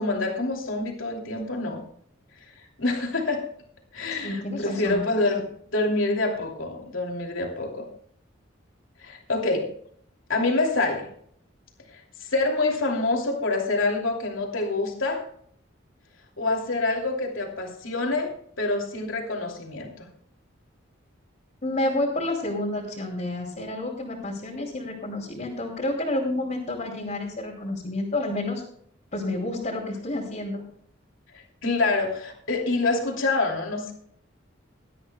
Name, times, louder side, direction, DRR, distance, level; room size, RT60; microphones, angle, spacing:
voice 1, 0.0-1.8 2.8-3.4 3.9-5.4 5.7-7.8 9.0-9.7 10.3-11.1 11.9-15.2 16.4-18.3 18.6-20.0 31.6-33.9, left 2 dB, 85° left, 1 dB, 2.9 m, -26 dB
voice 2, 4.2-5.0 21.6-28.6 29.1-30.6, left 1 dB, 40° left, -5 dB, 3.0 m, -29 dB
18.5 x 12.5 x 2.3 m, 0.62 s
head